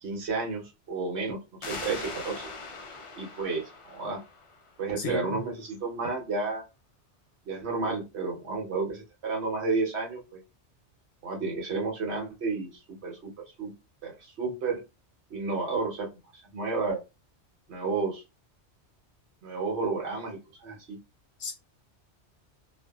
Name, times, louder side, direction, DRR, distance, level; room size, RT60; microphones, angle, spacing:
voice 1, 0.0-1.4 1.7-2.5 3.2-4.2 4.8-6.6 7.5-10.4 11.2-13.3 13.6-13.7 14.0-14.8 15.3-16.1 16.5-17.0 17.7-18.2 19.4-21.0, right 4 dB, 70° right, 1.2 m, -31 dB
sound 1, 1.6-5.0, left 3 dB, 45° left, 0.4 m, -41 dB
voice 2, 5.0-5.4 21.4-21.5, left 2 dB, 70° left, 1.1 m, -33 dB
2.6 x 2.4 x 2.3 m
omnidirectional pair, 1.2 m